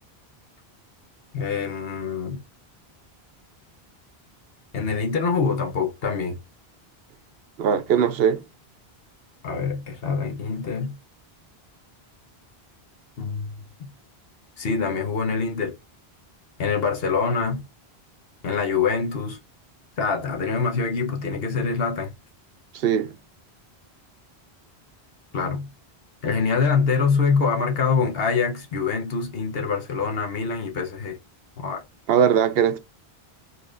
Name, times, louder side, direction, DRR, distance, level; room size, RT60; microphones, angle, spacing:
voice 1, 1.3-2.4 4.7-6.4 9.4-11.0 13.2-13.5 13.8-13.9 14.6-15.8 16.6-17.6 18.4-19.4 20.0-22.1 25.3-25.7 26.2-31.2 31.6-31.8, left 5 dB, 70° left, 1.1 m, -25 dB
voice 2, 7.6-8.4 22.7-23.1 32.1-32.8, right 8 dB, 70° right, 0.8 m, -20 dB
4.3 x 3.3 x 2.5 m
omnidirectional pair, 1.1 m